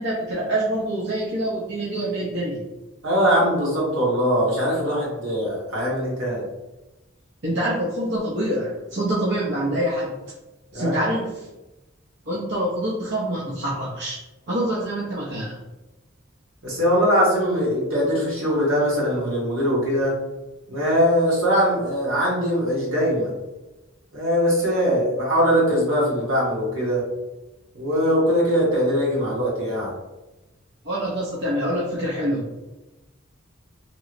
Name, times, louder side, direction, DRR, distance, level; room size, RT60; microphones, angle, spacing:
voice 1, 0.0-2.6 7.4-10.2 10.7-11.5 12.3-14.2 14.5-15.6 30.8-32.5, right 1 dB, 55° right, -7 dB, 0.6 m, -26 dB
voice 2, 3.0-6.4 10.7-11.1 16.6-20.1 20.7-23.3 24.1-27.0 27.7-29.9, equal, 85° right, -5 dB, 1.3 m, -21 dB
3.0 x 3.0 x 2.5 m, 1.0 s
head